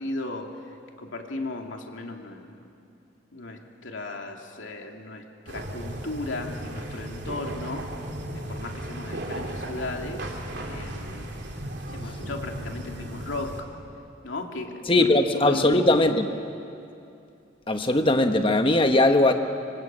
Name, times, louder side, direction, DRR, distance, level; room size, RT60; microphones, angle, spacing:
voice 1, 0.0-2.7 3.3-7.9 8.3-10.4 10.7-11.3 11.9-13.7 14.2-15.9, left 2 dB, 85° left, 2 dB, 2.6 m, -36 dB
sound 1, 5.5-13.6, right 1 dB, 60° right, 3.3 m, -35 dB
voice 2, 14.9-16.3 17.7-19.3, left 2 dB, 30° left, 6 dB, 1.2 m, -20 dB
25.5 x 24.0 x 8.8 m, 2.6 s
head